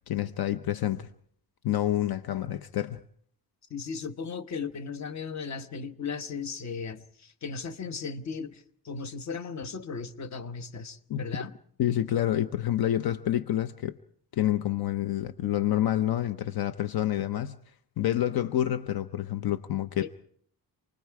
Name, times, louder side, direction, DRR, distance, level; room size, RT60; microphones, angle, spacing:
voice 1, 0.1-1.1 1.6-3.0 11.1-11.2 11.8-14.0 14.3-17.6 18.0-20.1, left 12 dB, 70° left, 11 dB, 0.8 m, -28 dB
voice 2, 3.7-11.5 20.0-20.1, left 5 dB, 45° left, 10 dB, 1.2 m, -36 dB
28.0 x 20.5 x 4.8 m, 0.62 s
cardioid pair, 130°, 38 cm